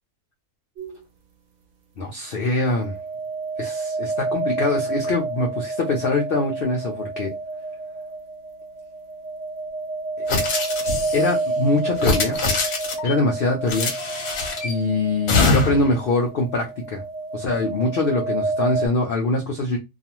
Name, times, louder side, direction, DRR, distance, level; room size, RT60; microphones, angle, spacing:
sound 1, 0.8-1.0 2.6-18.9, right 3 dB, 60° right, 0.8 m, -29 dB
voice 1, 2.0-2.9 3.6-7.3 10.3-10.4 11.1-12.4 13.0-13.9 14.6-17.0 17.3-19.8, left 2 dB, 85° left, 0.5 m, -23 dB
sound 2, 10.3-11.3 11.9-13.1 13.7-14.7 15.3-15.9, left 3 dB, 55° left, 0.8 m, -23 dB
2.4 x 2.3 x 2.9 m
omnidirectional pair, 1.6 m